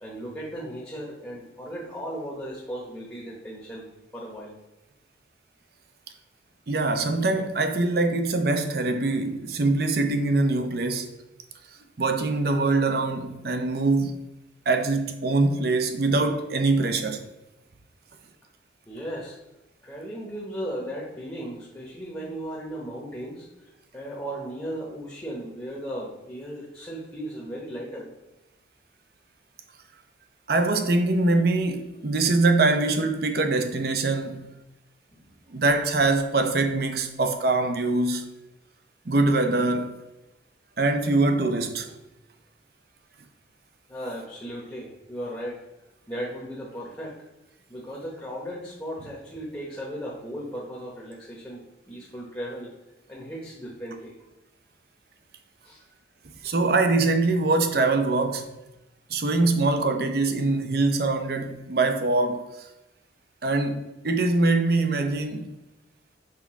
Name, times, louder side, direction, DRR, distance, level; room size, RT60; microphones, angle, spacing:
voice 1, 0.0-3.9 4.1-4.5 18.9-19.4 19.8-28.1 35.1-35.2 43.9-45.6 46.1-47.2 47.7-52.7 53.1-54.2 55.6-55.8, equal, 15° left, 1.0 m, -36 dB
voice 2, 6.7-11.1 12.0-14.2 14.7-17.3 30.5-34.5 35.5-38.3 39.1-40.0 40.8-41.9 56.4-58.5 59.1-62.4 63.4-65.5, right 3 dB, 55° right, 0.6 m, -23 dB
5.9 x 3.5 x 4.7 m
head